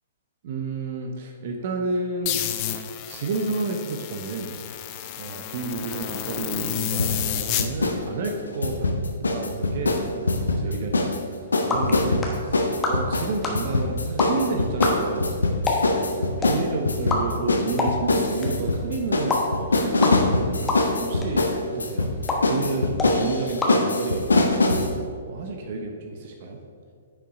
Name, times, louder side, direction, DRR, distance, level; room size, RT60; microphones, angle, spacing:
voice 1, 0.4-2.4 3.1-4.6 5.2-8.9 9.2-11.2 11.6-15.4 15.8-20.7 21.0-22.1 22.5-25.0 25.3-26.6, right 3 dB, 45° right, 3 dB, 0.8 m, -31 dB
sound 1, 2.3-7.7, left 11 dB, 35° left, 0.5 m, -30 dB
sound 2, 7.0-11.2 11.5-24.9, left 2 dB, 70° left, 0.9 m, -23 dB
sound 3, 11.2-24.5, left 2 dB, 15° left, 1.2 m, -31 dB
9.8 x 5.6 x 3.7 m, 2.1 s
figure-of-eight pair, 115°, 0 cm